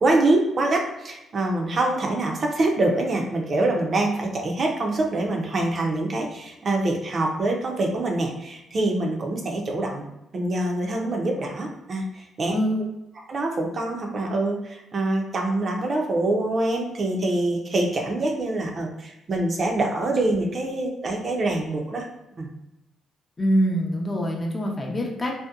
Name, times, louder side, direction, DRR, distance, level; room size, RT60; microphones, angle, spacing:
voice 1, 0.0-10.0 10.3-12.5 13.3-22.1 22.4-22.5, right 2 dB, 45° right, 1 dB, 0.5 m, -25 dB
voice 2, 12.5-12.8 23.4-25.4, equal, 25° left, 0 dB, 0.5 m, -24 dB
2.7 x 2.1 x 2.3 m, 0.89 s
cardioid pair, 90°, 0 cm